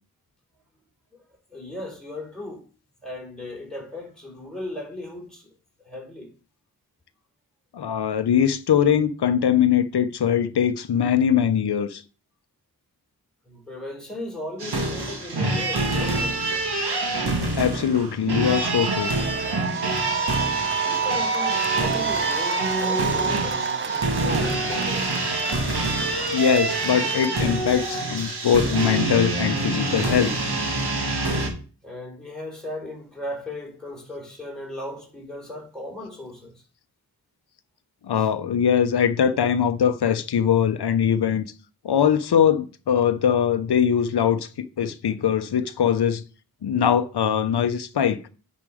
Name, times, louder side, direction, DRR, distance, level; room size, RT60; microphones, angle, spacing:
voice 1, 1.5-2.6 3.0-5.5 5.8-6.3 13.5-16.4 20.8-25.2 31.8-36.6 38.2-38.3, left 1 dB, ahead, 3.9 m, -36 dB
voice 2, 7.7-12.0 17.5-19.1 26.3-30.3 38.0-41.5 41.8-46.2 46.6-48.2, left 8 dB, 90° left, 0.6 m, -21 dB
sound 1, 14.6-31.5, right 2 dB, 85° right, 1.9 m, -26 dB
sound 2, 18.5-27.3, right 6 dB, 30° right, 0.4 m, -29 dB
9.6 x 4.3 x 4.9 m
wide cardioid pair, 65°, 38 cm